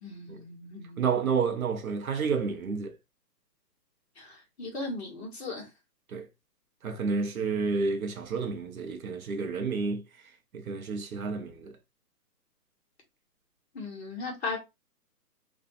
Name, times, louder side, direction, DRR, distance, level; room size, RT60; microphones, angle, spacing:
voice 1, 0.0-1.0 4.2-5.7 13.7-14.6, left 3 dB, 40° left, 1.1 m, -37 dB
voice 2, 1.0-3.0 6.1-6.3 6.8-10.0 10.5-11.7, right 5 dB, 60° right, 0.6 m, -30 dB
2.6 x 2.2 x 2.5 m
hypercardioid pair, 160°, 49 cm